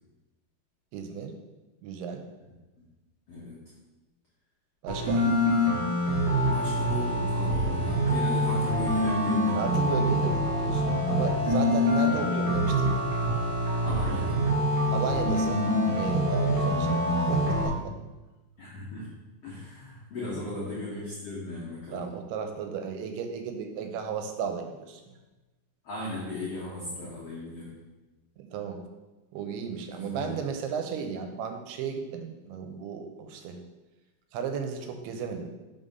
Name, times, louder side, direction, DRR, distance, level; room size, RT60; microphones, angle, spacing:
voice 1, 0.9-1.4 1.8-2.3 4.8-5.3 9.5-12.9 14.9-15.7 15.9-18.0 20.2-20.4 21.9-25.1 27.0-27.1 28.4-28.8 29.3-33.6 34.3-35.5, right 6 dB, 90° right, 5 dB, 2.7 m, -35 dB
voice 2, 4.9-5.5 6.4-9.7 11.5-11.7 13.8-14.4 16.9-17.1 18.6-19.1 19.4-22.1 25.8-27.8 29.9-30.4, left 1 dB, 85° left, -7 dB, 1.3 m, -37 dB
sound 1, 4.9-17.7, equal, 55° right, 2.1 m, -25 dB
5.5 x 3.7 x 5.4 m, 1.1 s
omnidirectional pair, 4.5 m